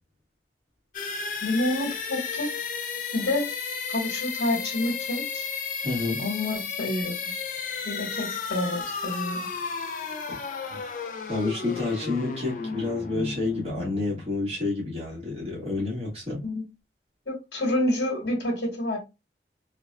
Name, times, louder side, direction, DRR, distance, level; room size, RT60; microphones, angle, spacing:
sound 1, 0.9-14.6, left 5 dB, 45° left, 0.4 m, -33 dB
voice 1, 1.4-2.5 3.1-3.5 3.9-5.5 6.2-7.1 7.8-9.4 16.4-16.7 17.3-19.0, left 1 dB, 80° left, 1.3 m, -28 dB
voice 2, 5.8-6.2 10.3-10.4 10.7-10.9 11.3-16.4, left 3 dB, 35° right, 1.5 m, -29 dB
3.3 x 2.3 x 2.2 m
head